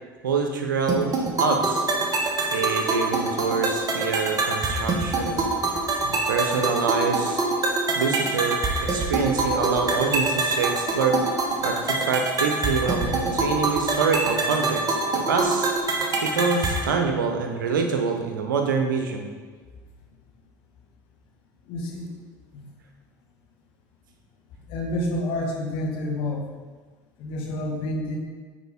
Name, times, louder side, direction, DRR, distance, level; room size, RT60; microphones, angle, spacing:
voice 1, 0.2-1.8 2.5-5.5 6.0-7.4 7.9-8.6 8.9-11.2 11.6-15.7 16.2-19.3, right 5 dB, 80° right, 4 dB, 0.9 m, -26 dB
sound 1, 0.9-16.9, right 2 dB, 35° right, 1.3 m, -25 dB
voice 2, 21.7-22.1 22.5-22.7 24.7-26.5 27.2-28.2, left 1 dB, 60° left, 1 dB, 1.4 m, -29 dB
9.1 x 4.6 x 3.6 m, 1.5 s
hypercardioid pair, 70°, 11 cm